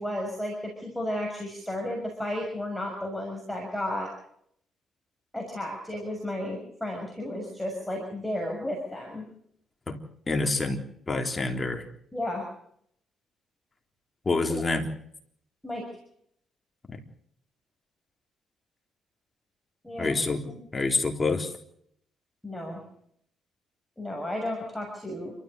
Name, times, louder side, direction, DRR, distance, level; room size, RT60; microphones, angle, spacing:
voice 1, 0.0-4.1 5.3-9.3 12.1-12.4 14.5-14.6 15.6-15.8 19.8-20.2 20.4-20.9 22.4-22.8 24.0-25.3, left 1 dB, 5° left, 0 dB, 6.4 m, -33 dB
voice 2, 10.3-10.8 11.1-11.8 14.3-14.9 16.9-17.0 20.0-20.4 20.7-21.5, left 3 dB, 25° left, 4 dB, 3.7 m, -27 dB
28.5 x 14.0 x 6.7 m, 0.69 s
cardioid pair, 90°, 0 cm